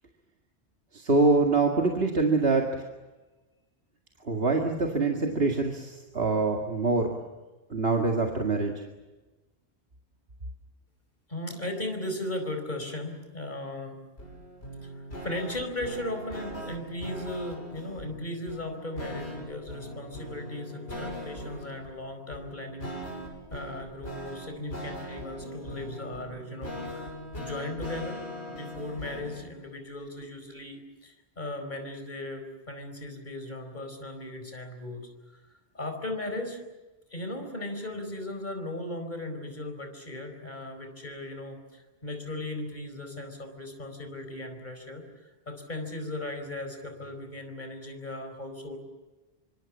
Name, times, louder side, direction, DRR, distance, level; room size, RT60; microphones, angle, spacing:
voice 1, 0.9-2.9 4.2-7.2 7.7-8.7, right 3 dB, 60° right, 1 dB, 2.3 m, -25 dB
voice 2, 11.3-14.0 14.8-14.9 15.2-23.2 23.5-27.1 27.4-28.2 28.5-35.1 35.7-36.6 37.1-48.8, left 1 dB, 45° left, 6 dB, 4.8 m, -37 dB
sound 1, 14.2-29.5, equal, 70° left, 6.8 m, -40 dB
27.0 x 25.0 x 7.4 m, 1.2 s
omnidirectional pair, 1.1 m